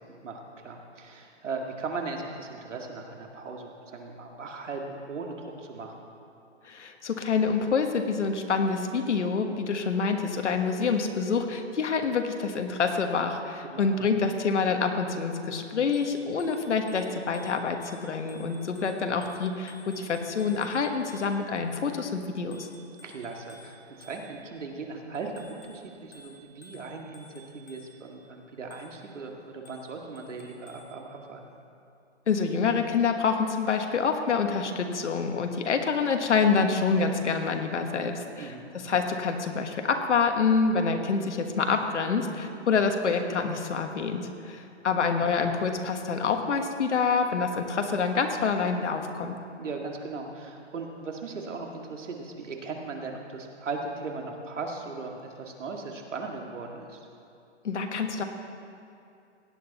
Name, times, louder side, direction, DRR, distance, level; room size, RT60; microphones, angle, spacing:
voice 1, 0.2-6.1 13.7-13.9 23.0-31.4 38.4-38.7 49.6-57.0, right 4 dB, 85° right, 2 dB, 2.1 m, -38 dB
voice 2, 6.6-22.7 32.3-38.5 38.8-49.4 57.6-58.2, left 5 dB, 75° left, 5 dB, 1.4 m, -27 dB
Bicycle bell, 15.9-21.6 22.5-24.6 25.1-28.1 28.7-29.1 29.7-31.0, equal, 15° left, 0.8 m, -54 dB
17.0 x 10.0 x 4.1 m, 2.6 s
hypercardioid pair, 180°, 36 cm